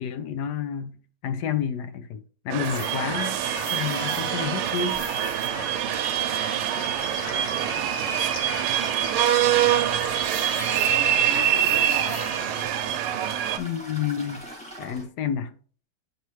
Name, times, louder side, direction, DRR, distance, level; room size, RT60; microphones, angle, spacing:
voice 1, 0.0-3.4 3.7-5.0 13.6-14.5 14.8-15.5, left 8 dB, 75° left, 0.9 m, -30 dB
sound 1, 2.5-13.6, right 11 dB, 80° right, 1.5 m, -25 dB
sound 2, 2.6-12.6, left 4 dB, 50° left, 0.9 m, -39 dB
Toilet flush, 2.8-15.0, right 1 dB, 5° left, 2.0 m, -41 dB
voice 2, 7.3-7.7 10.6-12.3, equal, 25° left, 2.4 m, -39 dB
9.1 x 4.8 x 3.1 m
omnidirectional pair, 2.4 m